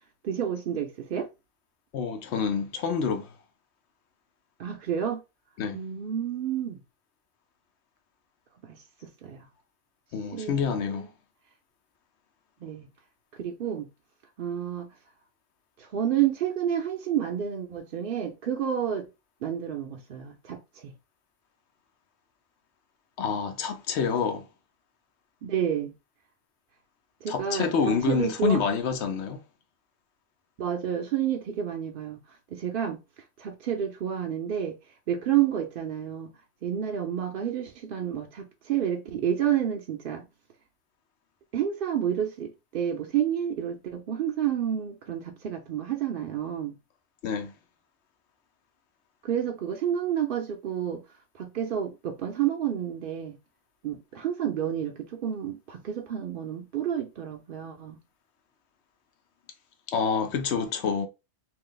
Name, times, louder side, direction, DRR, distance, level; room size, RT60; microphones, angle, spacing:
voice 1, 0.2-1.3 4.6-5.2 5.7-6.8 8.6-9.5 10.3-11.1 12.6-12.9 13.4-13.9 14.4-14.9 15.8-19.0 19.4-20.9 25.4-25.9 27.2-28.6 30.6-33.0 33.4-34.8 35.1-36.3 36.6-40.3 41.5-46.7 49.2-51.0 51.3-53.4 53.8-58.0, right 9 dB, 60° right, 0.7 m, -30 dB
voice 2, 1.9-3.3 5.6-5.8 10.1-11.1 23.2-24.4 27.3-29.4 47.2-47.5 59.9-61.1, left 6 dB, 75° left, 0.9 m, -27 dB
3.1 x 2.6 x 3.8 m
omnidirectional pair, 1.2 m